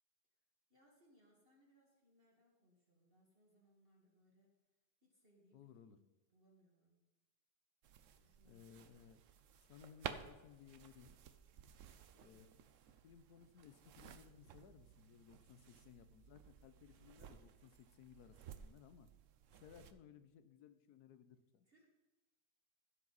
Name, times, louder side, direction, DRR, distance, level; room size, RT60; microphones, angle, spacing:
voice 1, 0.7-4.5 5.0-6.0 6.3-7.0 8.2-9.0 12.1-12.4 21.6-21.9, equal, 35° right, -2 dB, 1.9 m, -72 dB
voice 2, 5.5-6.0 8.4-9.2 9.7-11.2 12.2-12.5 13.0-19.1 19.6-21.7, left 8 dB, 70° left, 12 dB, 1.2 m, -61 dB
sound 1, 7.8-19.9, right 8 dB, 60° right, 0.9 m, -55 dB
16.0 x 7.5 x 4.0 m, 1.1 s
omnidirectional pair, 1.8 m